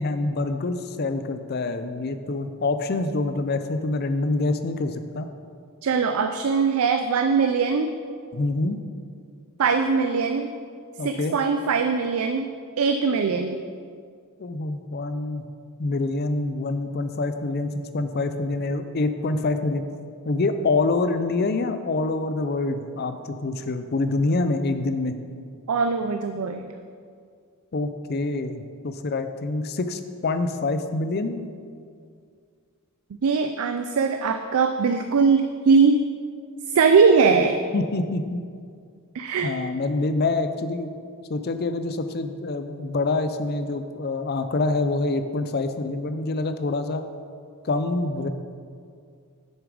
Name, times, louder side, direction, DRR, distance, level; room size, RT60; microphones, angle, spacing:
voice 1, 0.0-5.3 8.3-8.8 11.0-11.4 14.4-15.4 15.8-19.8 20.2-25.2 27.7-31.4 37.7-38.4 39.4-40.9 41.3-47.0 47.6-48.3, left 3 dB, 45° left, 9 dB, 0.5 m, -26 dB
voice 2, 5.8-7.9 9.6-10.5 11.0-12.5 12.8-13.6 25.7-26.7 33.2-36.0 36.7-37.6 39.1-39.5, right 5 dB, 80° right, 7 dB, 0.4 m, -21 dB
7.2 x 6.9 x 4.9 m, 2.2 s
head